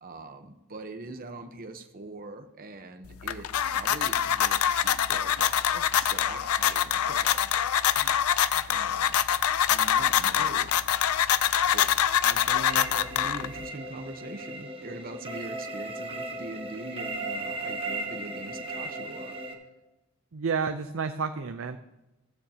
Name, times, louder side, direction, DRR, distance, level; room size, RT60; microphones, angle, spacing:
voice 1, 0.0-7.7 8.7-9.2 9.7-10.7 11.7-19.4, right 2 dB, 40° right, 6 dB, 0.9 m, -42 dB
sound 1, 3.0-13.7, left 10 dB, 85° left, 0.5 m, -25 dB
sound 2, 12.7-19.5, right 2 dB, 25° right, 1.4 m, -36 dB
voice 2, 20.3-21.8, right 5 dB, 65° right, 7 dB, 0.6 m, -30 dB
15.5 x 14.5 x 2.9 m, 1.0 s
head